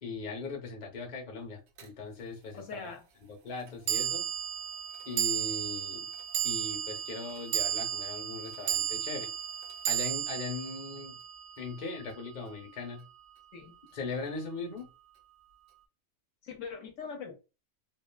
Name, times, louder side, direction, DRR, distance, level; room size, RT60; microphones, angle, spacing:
voice 1, 0.0-2.9 3.4-4.3 5.1-6.0 6.4-9.3 9.9-11.2 11.6-13.0 13.9-14.9, left 4 dB, 40° left, 0.7 m, -39 dB
sound 1, 1.8-1.9 3.9-12.3, right 10 dB, 80° right, 1.0 m, -34 dB
voice 2, 2.5-3.0 13.5-13.7 16.4-17.3, left 5 dB, 65° left, 0.9 m, -41 dB
3.2 x 2.4 x 2.2 m
omnidirectional pair, 1.5 m